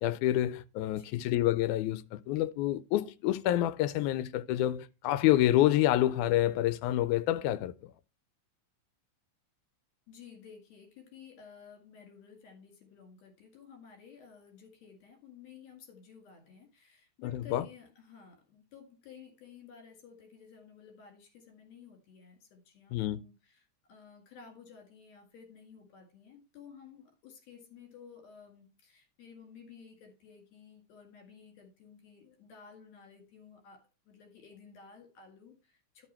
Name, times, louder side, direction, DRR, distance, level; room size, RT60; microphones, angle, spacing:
voice 1, 0.0-7.9 17.2-17.6 22.9-23.2, left 13 dB, 90° left, 2.0 m, -28 dB
voice 2, 0.9-1.2 10.1-36.1, left 6 dB, 65° left, 3.2 m, -54 dB
11.5 x 4.1 x 4.4 m
omnidirectional pair, 3.4 m